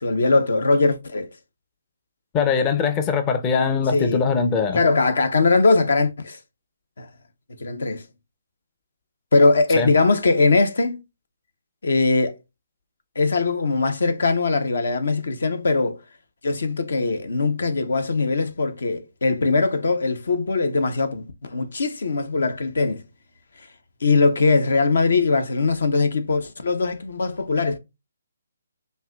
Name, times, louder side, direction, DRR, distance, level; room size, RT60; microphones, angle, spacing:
voice 1, 0.0-1.3 3.9-4.2 4.7-6.4 7.0-7.1 7.6-8.0 9.3-11.0 11.8-12.4 13.2-16.0 16.4-23.0 24.0-27.8, left 3 dB, 70° left, 0.8 m, -21 dB
voice 2, 2.3-4.8 9.8-9.9, left 5 dB, 20° left, 0.5 m, -21 dB
5.4 x 2.7 x 2.2 m
figure-of-eight pair, 145°, 0 cm